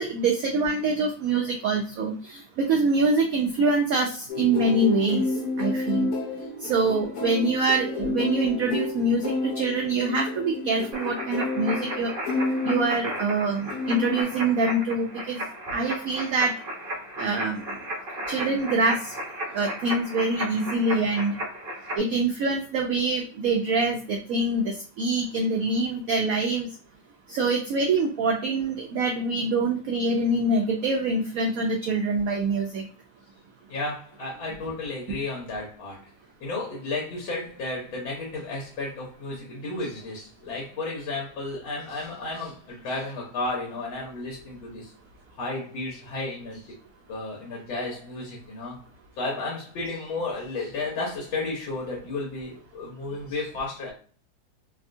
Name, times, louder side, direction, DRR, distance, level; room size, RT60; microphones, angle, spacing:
voice 1, 0.0-5.2 5.6-6.1 6.6-12.1 12.6-15.5 15.7-16.6 17.2-17.8 18.3-19.1 19.5-21.3 22.0-26.7 27.3-32.9, right 3 dB, 80° right, 1 dB, 0.7 m, -25 dB
sound 1, 4.3-13.4 13.7-14.2, left 3 dB, 60° left, 1.1 m, -30 dB
sound 2, 10.9-22.0, right 1 dB, 40° right, 0.7 m, -35 dB
voice 2, 33.7-36.1 36.4-44.9 45.4-46.8 47.1-48.8 49.2-53.9, left 2 dB, 90° left, -3 dB, 1.7 m, -33 dB
3.5 x 2.2 x 2.5 m, 0.42 s
omnidirectional pair, 2.0 m